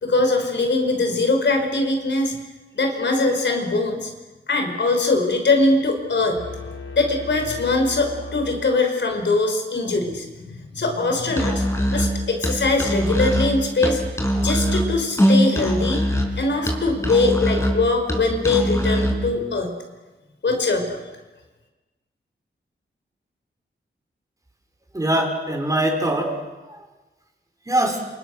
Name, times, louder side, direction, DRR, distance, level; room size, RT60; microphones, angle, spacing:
voice 1, 0.0-2.3 2.7-4.1 4.5-6.4 6.9-11.6 11.9-14.0 14.3-16.1 16.3-19.7 20.4-21.0, left 3 dB, 70° left, 4 dB, 5.2 m, -22 dB
sound 1, 6.4-9.3, left 4 dB, 90° left, 5.0 m, -37 dB
Musical instrument, 11.3-19.3, equal, 15° left, 5.7 m, -22 dB
voice 2, 24.9-26.8 27.7-28.1, right 1 dB, 15° right, 2 dB, 5.6 m, -23 dB
28.5 x 28.5 x 6.6 m, 1.2 s
wide cardioid pair, 115°, 20 cm